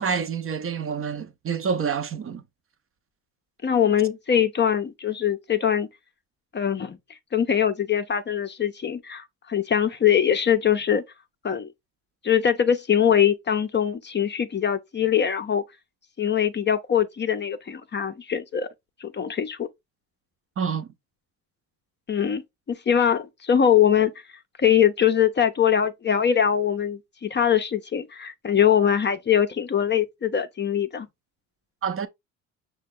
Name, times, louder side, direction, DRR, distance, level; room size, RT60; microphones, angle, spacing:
voice 1, 0.0-2.4 20.6-20.9 31.8-32.1, right 6 dB, 35° right, 0.5 m, -27 dB
voice 2, 3.6-5.9 6.5-7.0 7.3-11.0 11.4-11.7 12.2-15.6 16.2-18.7 19.0-19.7 22.1-22.4 22.7-24.1 24.6-31.1, left 9 dB, 25° left, 0.5 m, -22 dB
5.7 x 2.2 x 3.5 m
hypercardioid pair, 65°, 40 cm